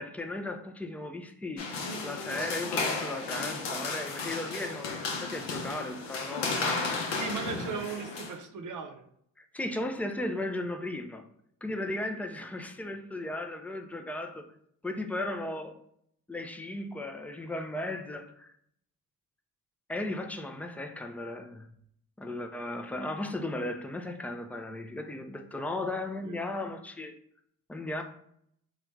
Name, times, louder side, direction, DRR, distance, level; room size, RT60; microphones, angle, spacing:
voice 1, 0.0-1.7 2.0-6.7 9.4-11.3 11.6-14.5 14.8-15.8 16.3-18.5 19.9-21.7 22.2-27.1 27.7-28.0, left 1 dB, 5° left, 0.3 m, -36 dB
sound 1, 1.6-8.3, left 3 dB, 70° left, 0.8 m, -33 dB
voice 2, 7.1-9.0 26.2-26.4, right 6 dB, 45° right, 0.7 m, -37 dB
3.2 x 2.4 x 3.1 m
hypercardioid pair, 55°, 43 cm